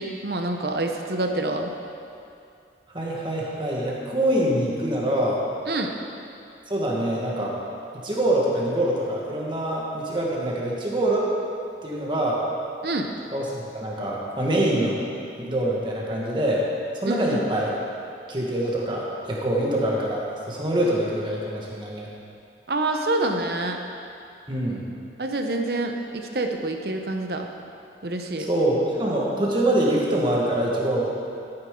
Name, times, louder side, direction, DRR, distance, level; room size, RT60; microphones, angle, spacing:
voice 1, 0.0-1.7 5.7-5.9 12.8-13.1 17.1-17.4 22.7-23.8 25.2-27.5 28.0-28.5, right 2 dB, 60° right, 4 dB, 0.8 m, -27 dB
voice 2, 2.9-5.4 6.7-7.6 8.0-11.3 11.8-12.4 13.3-15.0 15.4-16.7 16.9-17.7 18.3-22.1 24.5-24.8 28.4-31.1, right 1 dB, 25° right, -4 dB, 1.6 m, -24 dB
13.5 x 8.9 x 3.8 m, 2.5 s
head